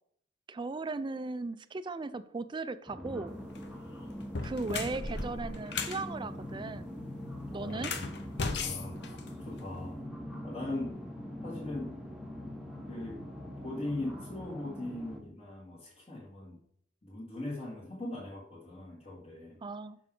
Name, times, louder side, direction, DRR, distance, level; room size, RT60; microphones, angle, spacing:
voice 1, 0.5-3.3 4.4-6.9 7.5-7.9 19.6-20.1, right 3 dB, 25° right, 13 dB, 0.4 m, -37 dB
sound 1, 2.9-15.2, equal, 5° right, 0.8 m, -43 dB
Open and close door, 3.4-3.7 4.2-6.0 7.7-9.8, left 4 dB, 65° left, 0.8 m, -36 dB
voice 2, 7.5-8.0 8.5-10.0 10.4-10.9 11.4-12.0 12.9-13.2 13.6-16.6 17.0-19.6, left 1 dB, 35° left, -7 dB, 1.7 m, -40 dB
6.7 x 6.0 x 3.7 m, 0.67 s
head